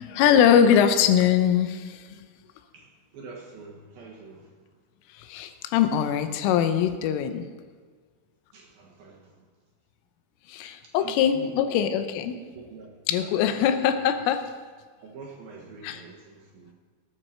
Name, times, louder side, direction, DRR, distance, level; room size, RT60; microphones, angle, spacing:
voice 1, 0.0-2.3 5.1-7.5 10.5-12.4 13.1-14.4 15.8-16.0, left 9 dB, 85° left, 9 dB, 3.3 m, -22 dB
voice 2, 2.7-4.7 8.5-9.5 10.8-11.8 12.3-13.6 13.9-14.0 15.0-16.7, right 4 dB, 65° right, -2 dB, 2.6 m, -45 dB
18.5 x 9.9 x 4.4 m, 1.5 s
omnidirectional pair, 5.7 m